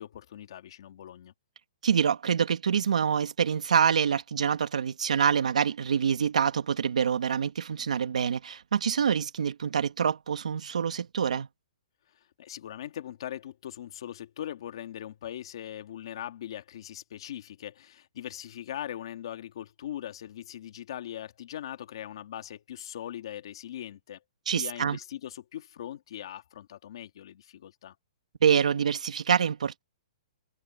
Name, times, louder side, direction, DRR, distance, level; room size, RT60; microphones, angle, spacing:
voice 1, 0.0-1.3 12.4-24.2 24.5-27.9, left 11 dB, 45° left, 1.9 m, -40 dB
voice 2, 1.8-11.5 24.5-25.0 28.4-29.8, right 7 dB, 90° right, 2.1 m, -26 dB
hypercardioid pair, 180°, 4 cm